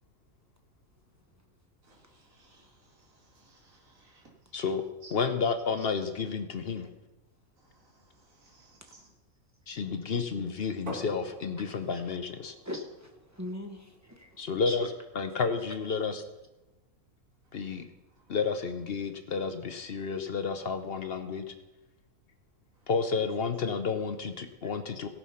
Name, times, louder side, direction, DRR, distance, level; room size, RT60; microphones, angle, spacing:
voice 1, 1.9-2.7 3.4-4.2 5.0-5.1 8.4-9.1, right 3 dB, 65° right, 2.5 m, -58 dB
voice 2, 5.1-6.9 9.7-12.5 14.4-14.8 15.1-16.2 17.5-17.8 18.3-21.5 22.9-25.1, left 5 dB, 50° left, 0.8 m, -31 dB
sound 1, 10.9-16.5, equal, 90° right, 3.5 m, -48 dB
voice 3, 12.6-14.9 15.9-16.0 24.6-24.7, left 1 dB, 10° right, 1.1 m, -41 dB
17.0 x 5.7 x 5.7 m
omnidirectional pair, 1.5 m